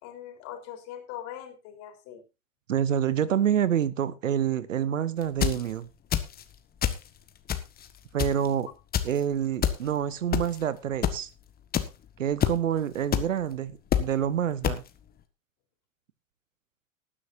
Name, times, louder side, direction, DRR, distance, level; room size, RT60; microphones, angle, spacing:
voice 1, 0.0-2.2, left 11 dB, 40° left, 4.0 m, -41 dB
voice 2, 2.7-5.9 8.1-8.7 9.0-11.3 12.2-14.8, right 9 dB, 70° right, 1.0 m, -27 dB
sound 1, 5.2-5.6 6.1-6.4 6.8-7.1 7.5-7.9 8.2-8.5 8.9-9.1 9.6-9.8 10.3-10.6 11.0-11.1 11.7-11.8 12.4-12.6 13.1-13.2 13.9-14.0 14.6-14.8, left 9 dB, 25° left, 1.5 m, -25 dB
19.5 x 9.9 x 2.7 m
figure-of-eight pair, 90°, 40 cm